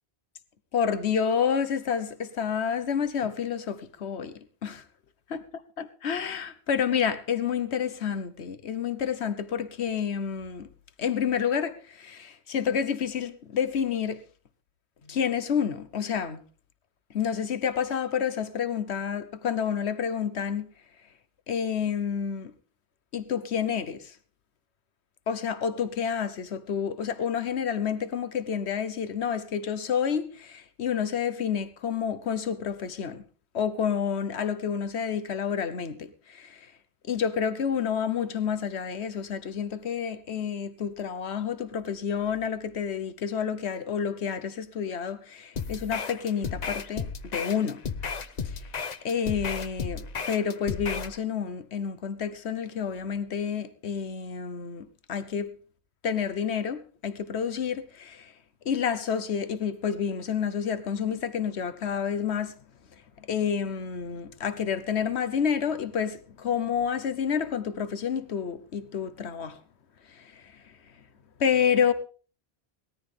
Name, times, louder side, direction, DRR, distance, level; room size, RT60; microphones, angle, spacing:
voice 1, 0.7-4.8 5.3-5.4 6.0-10.7 11.0-14.2 15.1-16.4 17.1-20.7 21.5-22.5 23.1-24.2 25.3-33.2 33.5-36.7 37.1-47.8 48.4-48.7 49.0-55.5 56.0-58.3 58.6-62.6 63.2-69.6 70.1-70.7 71.4-71.9, left 7 dB, 90° left, 1.3 m, -29 dB
sound 1, 45.6-51.2, left 5 dB, 45° left, 0.8 m, -34 dB
19.5 x 13.5 x 3.4 m
omnidirectional pair, 1.1 m